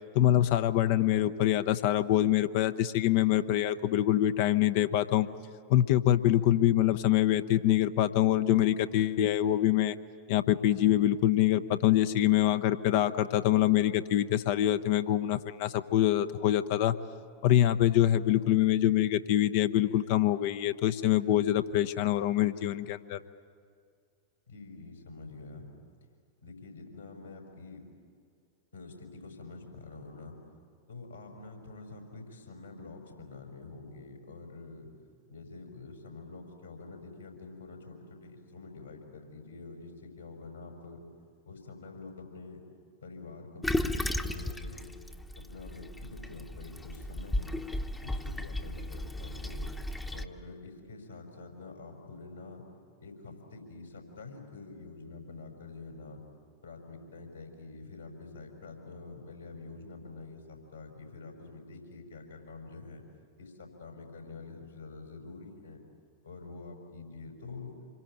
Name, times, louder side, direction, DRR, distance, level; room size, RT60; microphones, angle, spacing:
voice 1, 0.1-5.3 5.7-9.9 10.3-17.0 17.4-23.2, left 12 dB, 50° left, 11 dB, 0.8 m, -25 dB
voice 2, 24.5-25.7 26.4-27.8 28.7-30.4 30.9-34.9 35.3-41.0 41.5-42.6 43.0-44.9 45.4-47.7 48.0-49.7 50.1-52.6 53.0-56.2 56.6-63.0 63.4-65.8 66.2-67.7, left 3 dB, 80° left, 2 dB, 5.3 m, -46 dB
Toilet flush, 43.6-50.2, left 1 dB, 10° left, 1.0 m, -35 dB
26.5 x 22.5 x 8.9 m, 2.3 s
figure-of-eight pair, 90°, 0 cm